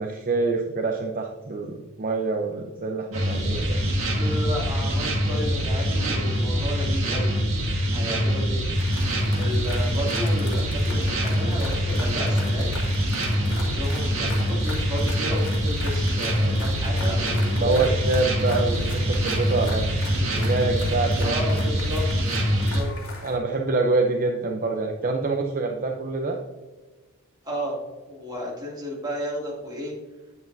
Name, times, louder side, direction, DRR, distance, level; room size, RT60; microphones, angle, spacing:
voice 1, 0.0-3.8 17.6-21.4 23.2-26.4, right 3 dB, 40° right, 2 dB, 0.6 m, -26 dB
sound 1, 3.1-22.8, equal, 65° right, 2.0 m, -24 dB
voice 2, 4.1-7.3 7.9-8.7 9.4-13.2 13.5-18.0 21.2-22.1 22.5-22.9 27.4-27.8 28.1-29.9, equal, 20° right, -4 dB, 2.4 m, -33 dB
sound 2, 8.7-23.4, left 2 dB, 90° left, 2.4 m, -41 dB
9.4 x 7.7 x 2.6 m, 1.2 s
head